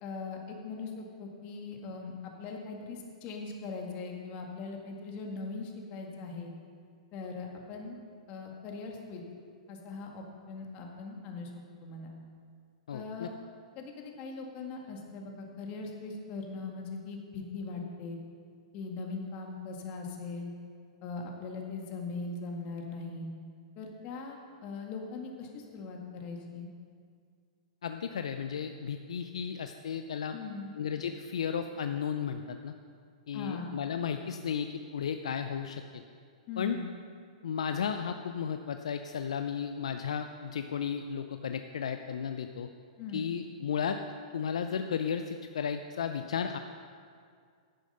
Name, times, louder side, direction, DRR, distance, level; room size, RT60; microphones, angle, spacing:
voice 1, 0.0-6.5 7.1-8.0 8.3-9.2 9.7-11.5 11.8-12.2 12.9-13.4 13.8-18.2 18.7-20.5 21.0-23.3 23.8-26.7 30.3-30.7 33.3-33.7 36.5-36.8 43.0-43.3, left 4 dB, 40° left, 1 dB, 2.0 m, -40 dB
voice 2, 12.9-13.3 27.8-30.3 30.7-32.7 33.3-36.0 36.6-36.8 37.4-42.7 43.1-44.0 44.3-46.6, left 7 dB, 75° left, 7 dB, 0.5 m, -34 dB
10.5 x 9.1 x 5.5 m, 2.2 s
hypercardioid pair, 115°, 3 cm